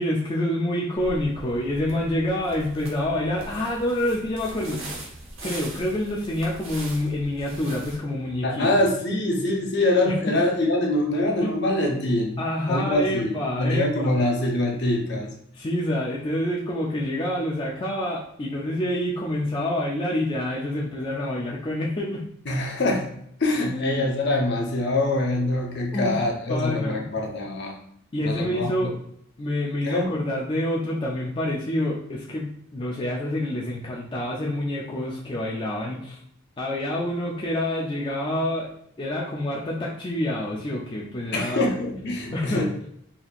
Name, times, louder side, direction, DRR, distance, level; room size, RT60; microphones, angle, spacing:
voice 1, 0.0-5.0 5.4-8.7 10.1-10.4 11.4-11.6 12.4-14.1 15.5-22.2 23.6-24.1 25.9-26.2 26.5-27.0 28.1-28.9 29.4-36.2 36.6-38.7 39.0-41.7 42.3-42.7, left 1 dB, 25° left, -4 dB, 0.4 m, -27 dB
sound 1, 0.9-8.0, right 1 dB, 65° right, 0.9 m, -41 dB
voice 2, 8.4-12.4 12.7-15.3 22.5-23.1 23.4-27.8 28.2-28.9 29.8-30.1 41.3-42.9, left 1 dB, 55° left, 0 dB, 0.7 m, -24 dB
4.2 x 2.8 x 2.4 m, 0.69 s
head